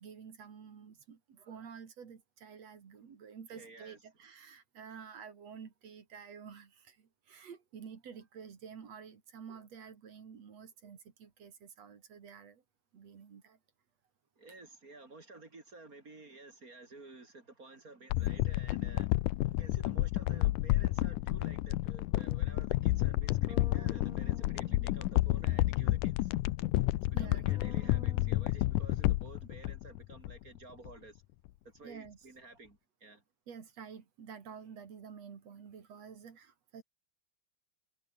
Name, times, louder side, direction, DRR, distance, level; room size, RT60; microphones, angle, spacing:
voice 1, 0.0-12.6 12.9-13.6 27.1-27.5 31.8-32.2 33.5-36.8, right 6 dB, 55° right, 3.6 m, -50 dB
voice 2, 3.5-4.0 14.4-19.2 19.6-26.3 27.0-31.2 31.6-33.2, right 3 dB, 25° right, 3.0 m, -53 dB
sound 1, 18.1-30.6 30.9-31.0, left 17 dB, 80° left, 2.2 m, -30 dB
sound 2, 23.5-25.9 27.5-28.2, equal, 5° right, 0.4 m, -53 dB
omnidirectional pair, 3.7 m